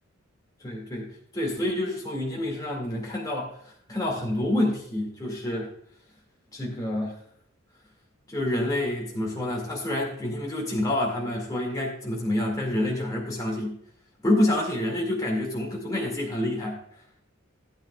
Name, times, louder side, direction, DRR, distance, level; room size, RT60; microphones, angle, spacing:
voice 1, 0.6-1.1 1.3-3.5 3.9-5.7 6.5-7.2 8.3-13.8 14.2-16.8, left 1 dB, 15° left, -2 dB, 2.2 m, -28 dB
16.5 x 9.0 x 2.4 m, 0.68 s
head